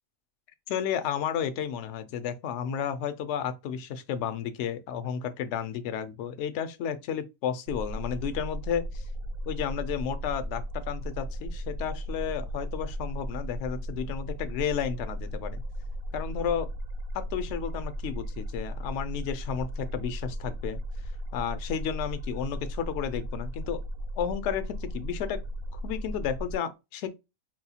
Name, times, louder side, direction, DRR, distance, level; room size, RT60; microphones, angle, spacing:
voice 1, 0.7-9.1 9.4-15.6 16.1-16.7 17.1-20.8 21.3-23.8 24.2-25.4 25.7-27.1, left 8 dB, 65° left, 0.7 m, -32 dB
sound 1, 7.7-26.6, equal, 80° right, 1.0 m, -36 dB
4.2 x 2.3 x 2.7 m
omnidirectional pair, 1.5 m